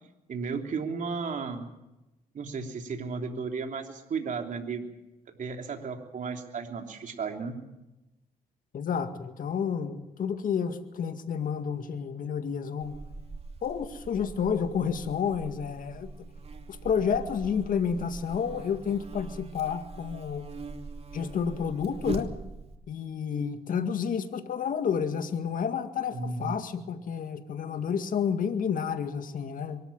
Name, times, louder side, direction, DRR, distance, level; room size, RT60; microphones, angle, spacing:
voice 1, 0.3-1.7 2.3-4.8 5.3-7.6 26.1-26.6, right 5 dB, 60° right, 4 dB, 3.3 m, -34 dB
voice 2, 8.7-13.0 13.6-16.1 16.7-20.5 21.1-22.3 22.9-29.8, left 7 dB, 65° left, 8 dB, 2.0 m, -30 dB
Buzz, 12.8-22.8, right 3 dB, 40° right, 2.6 m, -42 dB
23.5 x 13.0 x 8.9 m, 0.96 s
supercardioid pair, 65°, 15 cm